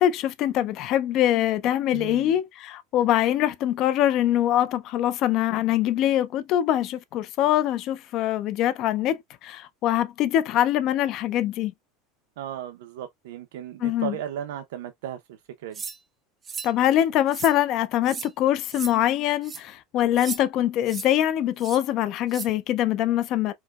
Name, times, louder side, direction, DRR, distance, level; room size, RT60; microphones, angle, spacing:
voice 1, 0.0-11.7 13.8-14.1 16.6-23.5, left 12 dB, 45° left, 0.4 m, -23 dB
voice 2, 1.9-2.3 12.4-15.8, right 10 dB, 85° right, 0.5 m, -36 dB
sound 1, 15.7-16.0 16.4-16.7 17.3-17.6 18.1-18.3 18.7-18.9 19.4-19.6 20.2-20.4 20.9-21.1 21.6-21.8 22.3-22.5, right 6 dB, 20° right, 0.5 m, -35 dB
4.5 x 2.0 x 2.3 m
supercardioid pair, 150°, 0 cm